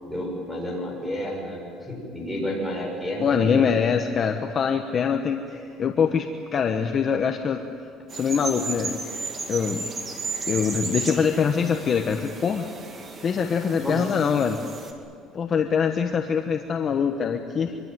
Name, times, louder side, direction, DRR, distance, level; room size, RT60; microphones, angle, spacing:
voice 1, 0.0-3.7 5.5-5.6 13.8-14.1, equal, ahead, -3 dB, 7.1 m, -31 dB
voice 2, 3.2-5.4 5.8-7.6 8.1-9.0 9.5-9.9 10.5-12.7 13.2-14.6 15.3-17.8, left 6 dB, 30° left, 4 dB, 1.2 m, -23 dB
sound 1, 8.1-14.9, right 4 dB, 30° right, 2.5 m, -34 dB
25.5 x 23.5 x 9.3 m, 2.3 s
cardioid pair, 165°, 0 cm